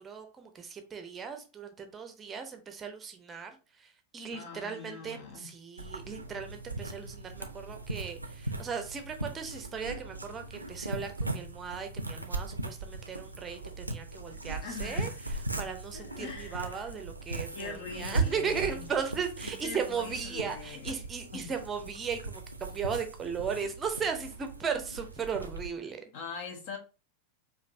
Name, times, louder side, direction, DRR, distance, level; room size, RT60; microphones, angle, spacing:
voice 1, 0.0-26.0, right 6 dB, 20° right, 0.6 m, -37 dB
voice 2, 4.3-5.5 14.6-15.4 15.9-16.8 17.5-18.8 19.4-21.1 21.3-21.5 26.1-26.8, left 5 dB, 50° left, 0.9 m, -43 dB
sound 1, 5.8-25.7, right 3 dB, 85° right, 0.5 m, -38 dB
5.1 x 2.5 x 2.6 m
figure-of-eight pair, 90°, 0 cm